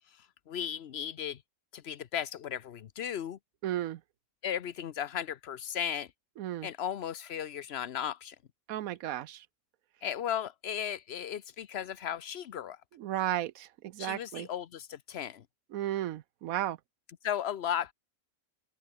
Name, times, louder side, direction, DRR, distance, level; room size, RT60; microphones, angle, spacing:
voice 1, 0.1-1.4 1.7-3.4 4.4-6.1 6.6-8.4 10.0-12.8 14.0-15.4 17.2-17.9, left 9 dB, 55° left, 0.9 m, -35 dB
voice 2, 3.6-4.0 6.4-6.7 8.7-9.4 12.9-14.5 15.7-16.8, right 12 dB, 85° right, 1.1 m, -34 dB
open air
omnidirectional pair, 1.4 m